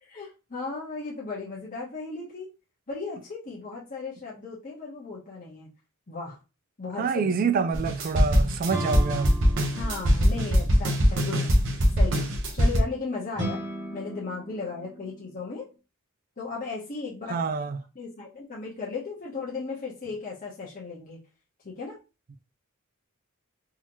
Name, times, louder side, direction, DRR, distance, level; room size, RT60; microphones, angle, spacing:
voice 1, 0.0-2.5 2.9-5.7 6.1-6.4 6.8-7.3 9.7-11.5 11.9-13.6 13.9-15.7 16.4-17.4 17.9-21.2 21.6-22.0, left 4 dB, 40° left, 1.0 m, -36 dB
voice 2, 7.0-9.3 17.3-17.8, right 5 dB, 40° right, 0.3 m, -26 dB
sound 1, 7.7-12.8, equal, 60° right, 0.9 m, -22 dB
sound 2, 8.7-10.7 13.3-15.5, right 1 dB, 20° right, 1.3 m, -36 dB
3.8 x 2.8 x 2.9 m
head